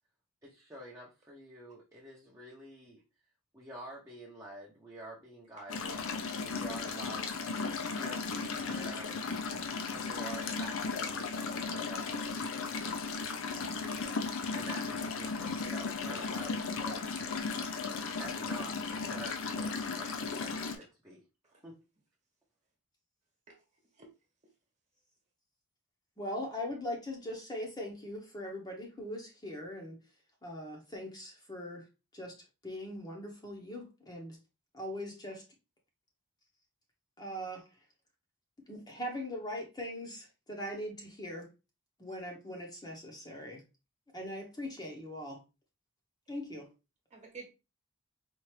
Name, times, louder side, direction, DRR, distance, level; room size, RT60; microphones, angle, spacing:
voice 1, 0.4-3.0 3.5-5.9 6.5-7.4 7.9-9.2 9.9-12.5 14.5-17.1 18.2-21.2 21.6-21.8, right 1 dB, 15° right, 0.7 m, -48 dB
sound 1, 5.7-20.8, left 4 dB, 65° left, 0.6 m, -36 dB
voice 2, 23.5-24.1 47.1-47.5, right 4 dB, 35° right, 1.2 m, -51 dB
voice 3, 26.2-30.0 30.4-31.9 32.1-32.3 32.6-34.4 34.7-35.4 37.2-37.6 38.7-41.5 42.0-43.6 44.1-45.4 46.3-46.7, left 1 dB, 20° left, 0.8 m, -40 dB
4.4 x 2.4 x 3.1 m
head